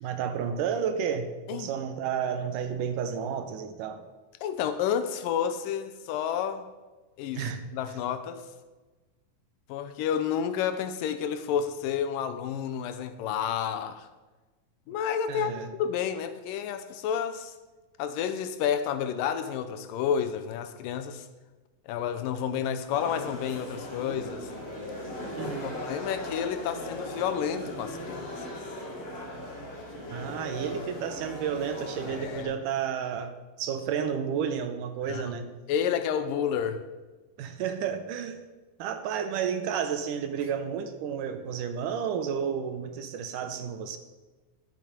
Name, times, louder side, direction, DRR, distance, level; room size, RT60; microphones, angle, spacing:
voice 1, 0.0-4.0 7.4-7.7 15.3-15.7 25.4-25.8 30.1-33.3 33.6-35.5 37.4-38.4 38.8-44.0, right 7 dB, 75° right, 8 dB, 2.2 m, -31 dB
voice 2, 4.4-6.7 7.2-8.5 9.7-14.1 14.9-15.5 15.8-17.5 18.0-21.3 21.9-24.5 25.4-28.5 32.1-32.5 35.1-35.4 35.7-36.8, left 8 dB, 85° left, 9 dB, 2.3 m, -30 dB
sound 1, 22.9-32.4, left 1 dB, 35° left, 2.7 m, -38 dB
12.0 x 7.7 x 5.0 m, 1.2 s
omnidirectional pair, 4.0 m